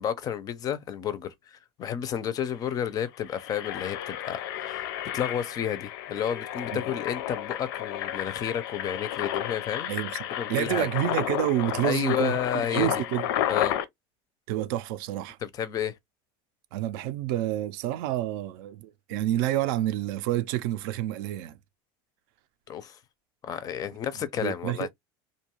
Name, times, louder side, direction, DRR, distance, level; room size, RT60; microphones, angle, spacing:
voice 1, 0.0-9.9 10.4-10.9 11.8-13.0 13.5-13.8 15.4-16.0 22.7-23.0 23.4-24.9, left 9 dB, 30° left, 0.4 m, -31 dB
Engine, 2.1-2.2 2.5-2.7 3.1-13.9, left 12 dB, 85° left, 0.5 m, -32 dB
voice 2, 9.9-10.2 10.5-13.3 14.5-15.4 16.7-21.6 24.4-24.9, right 13 dB, 70° right, 0.5 m, -29 dB
2.6 x 2.3 x 2.9 m
cardioid pair, 150°, 12 cm